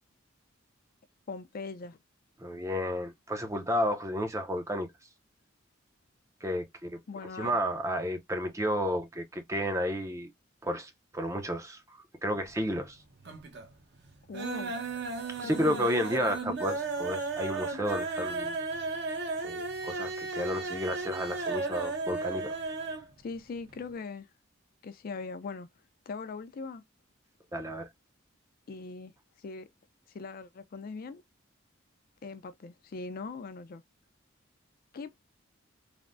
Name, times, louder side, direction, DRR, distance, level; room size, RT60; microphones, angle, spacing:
voice 1, 1.3-2.0 7.1-7.6 14.3-14.8 15.4-15.9 23.2-24.3 24.8-25.7 26.1-26.8 28.7-29.1 29.4-29.7 30.1-31.2 32.2-33.8 34.9-35.3, left 4 dB, 45° left, 0.4 m, -40 dB
voice 2, 2.4-4.9 6.4-7.0 7.4-10.3 10.6-13.0 15.3-18.6 19.4-22.5 27.5-27.9, equal, 15° right, 0.5 m, -32 dB
sound 1, 12.3-12.9 13.2-13.7 14.0-23.1 23.4-23.5 23.8-23.9, right 3 dB, 55° right, 0.8 m, -35 dB
3.3 x 2.0 x 2.4 m
head